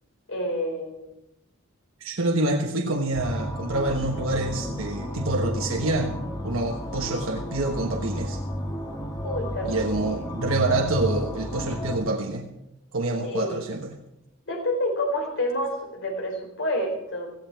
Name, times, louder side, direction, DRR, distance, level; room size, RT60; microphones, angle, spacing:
voice 1, 0.3-1.1 9.2-10.1 13.2-13.7 14.5-17.3, left 1 dB, 60° left, 2 dB, 4.2 m, -29 dB
voice 2, 2.0-6.1 6.4-8.4 9.6-12.5 12.9-13.9, right 2 dB, 70° right, 2 dB, 1.3 m, -27 dB
sound 1, 3.1-12.0, equal, 20° left, 2.1 m, -32 dB
17.0 x 16.0 x 4.7 m, 0.88 s
head